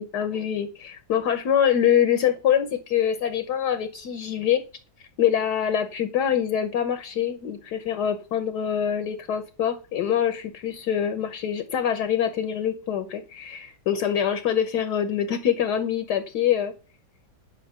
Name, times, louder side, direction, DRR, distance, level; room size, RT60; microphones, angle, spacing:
voice 1, 0.0-4.6 5.2-16.7, left 9 dB, 65° left, 8 dB, 1.4 m, -24 dB
9.6 x 5.8 x 5.7 m, 0.35 s
omnidirectional pair, 2.1 m